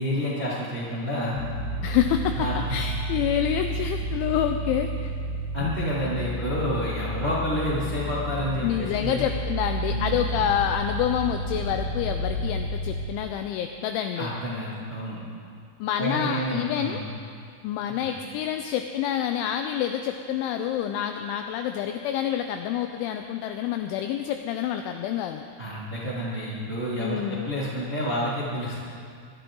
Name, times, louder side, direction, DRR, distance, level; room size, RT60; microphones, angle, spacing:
voice 1, 0.0-1.4 2.3-2.8 5.5-9.2 9.9-10.2 14.1-15.2 16.0-17.0 18.0-18.1 25.6-28.8, equal, 35° right, -8 dB, 0.9 m, -29 dB
sound 1, 1.4-13.1, right 1 dB, 60° left, 2.4 m, -31 dB
voice 2, 1.8-2.3 2.7-5.1 8.6-14.3 15.8-17.0 17.6-25.4 27.0-27.5, left 10 dB, 85° left, 6 dB, 2.7 m, -27 dB
21.5 x 12.0 x 3.8 m, 2.3 s
omnidirectional pair, 5.9 m